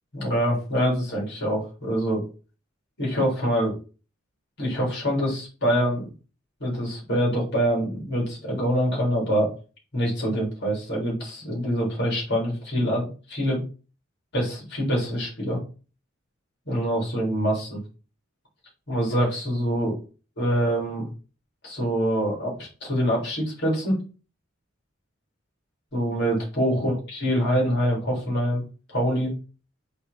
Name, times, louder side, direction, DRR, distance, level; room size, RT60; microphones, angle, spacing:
voice 1, 0.1-2.2 3.0-3.7 4.6-6.1 6.6-9.5 9.9-13.6 14.3-15.6 16.7-17.8 18.9-20.0 20.4-21.1 21.6-24.0 25.9-28.6 28.9-29.3, equal, 55° left, -3 dB, 3.4 m, -25 dB
5.6 x 3.4 x 5.2 m, 0.35 s
head